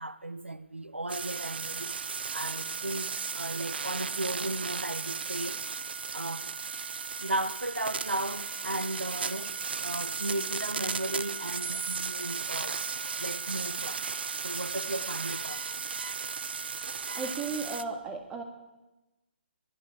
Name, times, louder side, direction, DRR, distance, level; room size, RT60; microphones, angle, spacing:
voice 1, 0.0-1.9 2.3-5.6 6.1-6.5 7.2-12.8 13.2-14.1 14.4-15.9, right 2 dB, 90° right, 0.9 m, -35 dB
sound 1, 1.1-17.8, right 5 dB, 60° right, 0.7 m, -35 dB
voice 2, 17.1-18.4, right 4 dB, 15° right, 1.7 m, -35 dB
11.0 x 10.5 x 9.3 m
figure-of-eight pair, 135°, 6 cm